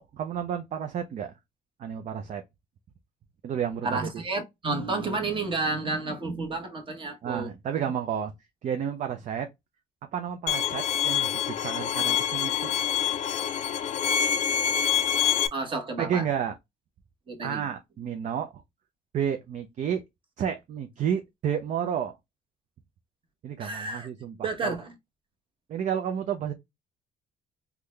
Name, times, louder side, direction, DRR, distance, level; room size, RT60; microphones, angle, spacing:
voice 1, 0.0-1.3 1.8-2.4 3.4-4.2 7.2-8.3 8.6-9.5 10.1-12.7 16.0-16.5 17.4-18.6 19.1-20.0 20.4-22.1 23.4-24.8 25.7-26.5, right 8 dB, 45° right, 0.5 m, -31 dB
voice 2, 3.8-7.5 15.5-16.3 17.3-17.6 23.6-24.1 24.4-24.9, right 3 dB, 30° right, 1.1 m, -31 dB
Bowed string instrument, 10.5-15.5, left 9 dB, 45° left, 0.5 m, -26 dB
3.7 x 2.2 x 3.1 m
cardioid pair, 110°, 17 cm